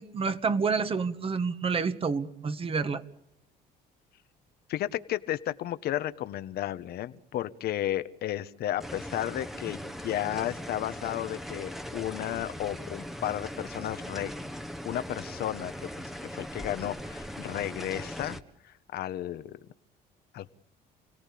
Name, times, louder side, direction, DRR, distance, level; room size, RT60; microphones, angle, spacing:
voice 1, 0.0-3.0, right 5 dB, 35° right, 11 dB, 1.8 m, -29 dB
voice 2, 4.7-14.3 14.8-18.4 18.6-19.6 20.3-20.5, left 12 dB, 70° left, 12 dB, 1.3 m, -33 dB
sound 1, 8.8-18.4, equal, ahead, 1.4 m, -40 dB
29.5 x 18.0 x 8.6 m, 0.79 s
cardioid pair, 110°, 17 cm